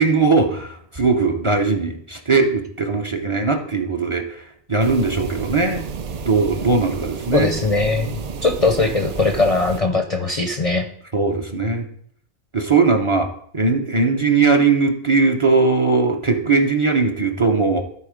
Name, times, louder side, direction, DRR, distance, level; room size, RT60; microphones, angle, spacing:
voice 1, 0.0-4.4 4.7-5.8 6.2-7.6 11.1-11.8 12.5-13.3 13.5-17.8, right 4 dB, 30° right, 4 dB, 0.8 m, -19 dB
sound 1, 4.8-9.8, right 5 dB, 55° right, 0.4 m, -31 dB
voice 2, 7.3-10.9, left 3 dB, 40° left, 5 dB, 0.6 m, -20 dB
12.5 x 4.5 x 5.0 m, 0.64 s
omnidirectional pair, 1.2 m